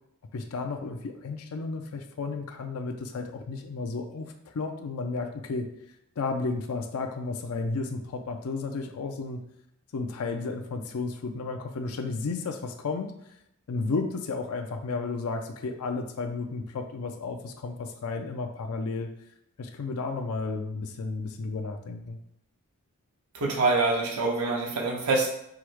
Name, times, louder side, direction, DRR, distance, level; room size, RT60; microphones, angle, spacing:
voice 1, 0.3-9.4 9.9-13.3 13.7-19.1 19.6-22.2, left 3 dB, 75° left, 5 dB, 0.5 m, -33 dB
voice 2, 23.3-25.3, right 3 dB, 80° right, -1 dB, 0.8 m, -25 dB
4.8 x 2.1 x 4.5 m, 0.78 s
head